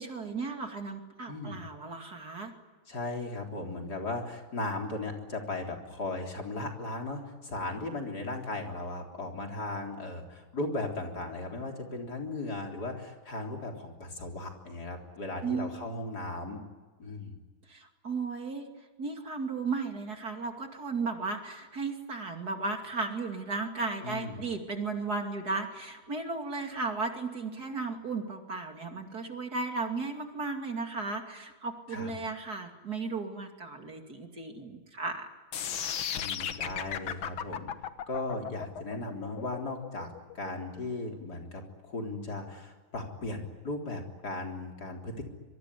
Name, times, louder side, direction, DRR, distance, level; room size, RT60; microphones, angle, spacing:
voice 1, 0.0-2.5 15.4-15.8 17.7-18.7 19.0-35.3, right 4 dB, 50° right, 4 dB, 3.0 m, -35 dB
voice 2, 1.3-1.6 2.9-16.6 17.0-17.4 24.0-24.4 31.9-32.1 36.2-37.7 38.1-45.2, left 2 dB, 50° left, 2 dB, 4.2 m, -37 dB
sound 1, 35.5-41.6, left 8 dB, 85° left, 2.0 m, -35 dB
26.0 x 23.5 x 9.9 m, 1.3 s
omnidirectional pair, 2.2 m